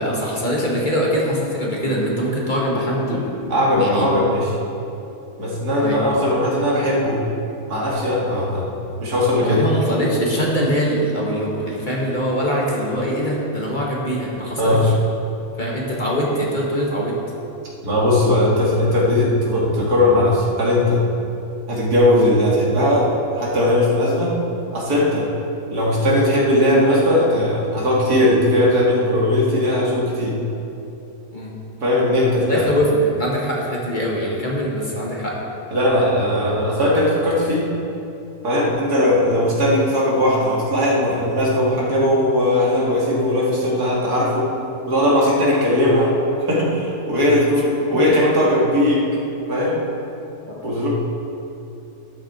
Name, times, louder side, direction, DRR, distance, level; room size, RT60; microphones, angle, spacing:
voice 1, 0.0-4.1 5.8-6.0 9.4-14.9 15.6-17.2 31.3-31.5 32.5-35.4 47.9-48.0 50.5-50.6, equal, 30° left, -4 dB, 1.8 m, -23 dB
voice 2, 3.5-4.5 5.4-7.2 7.7-8.7 9.0-9.6 14.6-14.8 17.8-21.0 21.7-24.3 24.7-25.3 25.7-30.4 31.8-32.7 35.7-37.7 38.4-44.5 44.9-46.1 46.4-49.1 49.5-49.8 50.6-50.9, left 1 dB, 80° right, -5 dB, 2.7 m, -18 dB
12.5 x 10.0 x 4.3 m, 2.8 s
omnidirectional pair, 1.6 m